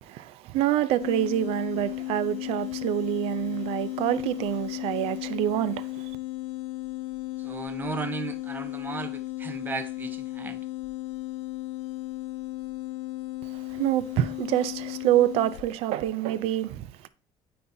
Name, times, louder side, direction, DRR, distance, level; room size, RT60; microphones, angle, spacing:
voice 1, 0.0-6.2 13.4-17.1, right 13 dB, 70° right, 0.4 m, -27 dB
sound 1, 1.0-15.8, left 17 dB, 85° left, 0.5 m, -35 dB
voice 2, 7.4-10.6, right 4 dB, 20° right, 0.7 m, -35 dB
9.2 x 4.2 x 2.7 m
cardioid pair, 145°, 10 cm